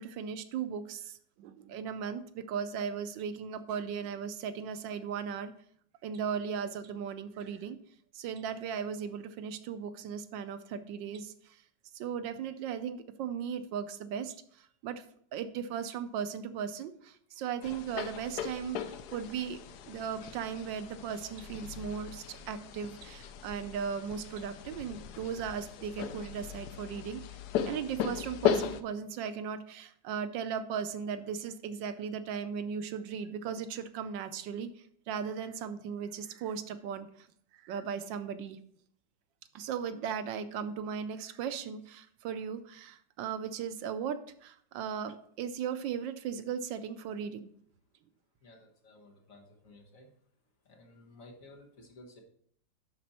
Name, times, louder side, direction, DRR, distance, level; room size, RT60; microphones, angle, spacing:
voice 1, 0.0-5.5 6.0-7.8 8.1-11.6 11.9-15.0 15.3-19.6 19.8-27.2 27.6-37.3 37.5-38.6 39.5-47.5, right 7 dB, 80° right, 11 dB, 1.3 m, -37 dB
sound 1, 17.6-28.8, left 8 dB, 70° left, 1.0 m, -37 dB
voice 2, 48.4-50.1 50.6-52.2, left 2 dB, 50° left, 0 dB, 1.6 m, -55 dB
11.0 x 4.2 x 4.2 m, 0.64 s
omnidirectional pair, 2.0 m